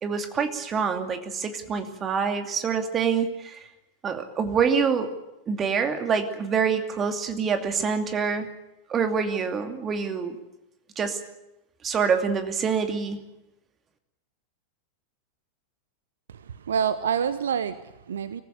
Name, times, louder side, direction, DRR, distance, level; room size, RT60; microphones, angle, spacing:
voice 1, 0.0-3.7 4.0-5.1 5.5-8.5 8.9-10.4 11.0-11.2 11.8-13.2, right 6 dB, 25° right, 6 dB, 2.6 m, -26 dB
voice 2, 16.3-18.4, right 7 dB, 65° right, 14 dB, 0.9 m, -27 dB
24.5 x 15.0 x 9.6 m, 0.94 s
figure-of-eight pair, 90°, 0 cm